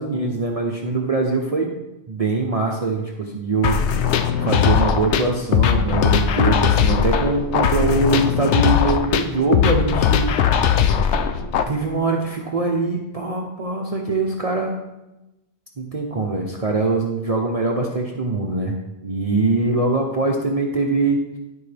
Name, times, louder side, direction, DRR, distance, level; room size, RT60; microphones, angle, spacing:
voice 1, 0.0-1.7 2.1-10.3 11.7-14.7 15.8-18.7 19.0-21.4, right 3 dB, 40° right, 0 dB, 0.7 m, -22 dB
sound 1, 3.6-11.6, left 8 dB, 85° left, 0.9 m, -19 dB
12.0 x 4.6 x 3.3 m, 0.97 s
omnidirectional pair, 1.1 m